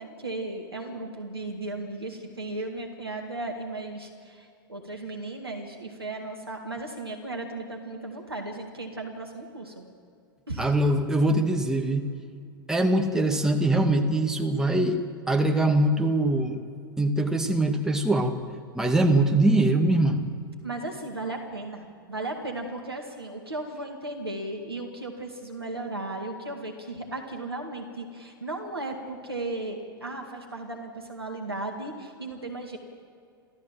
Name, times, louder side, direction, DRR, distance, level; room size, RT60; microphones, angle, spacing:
voice 1, 0.0-9.9 10.5-10.7 20.6-32.8, right 2 dB, 85° right, 2 dB, 2.2 m, -36 dB
voice 2, 10.6-12.1 12.7-15.0 15.3-16.6 17.0-18.4 18.8-20.2, right 1 dB, 5° right, 3 dB, 2.0 m, -22 dB
29.0 x 13.0 x 7.6 m, 2.4 s
figure-of-eight pair, 95°, 12 cm